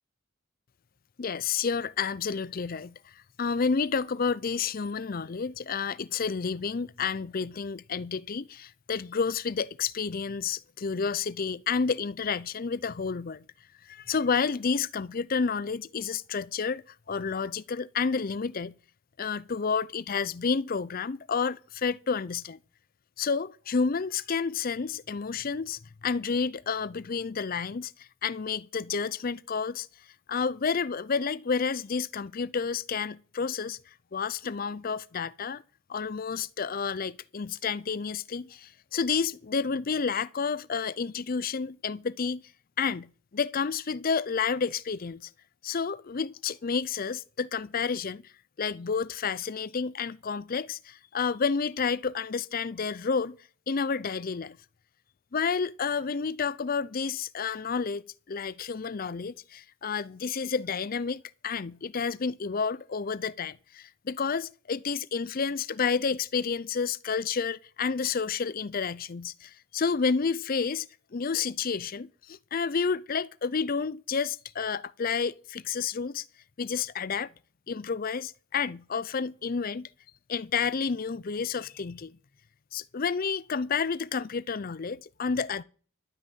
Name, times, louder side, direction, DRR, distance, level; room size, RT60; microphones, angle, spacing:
voice 1, 1.2-3.0 3.4-13.4 13.9-16.8 17.1-18.7 19.2-22.6 23.2-29.9 30.3-33.8 34.1-35.6 35.9-42.4 42.8-45.3 45.6-48.2 48.6-53.4 53.7-54.6 55.3-70.9 71.1-76.3 76.6-77.3 77.7-79.9 80.3-82.2 82.7-85.6, left 5 dB, 40° left, 0.5 m, -30 dB
12.5 x 6.3 x 9.0 m
head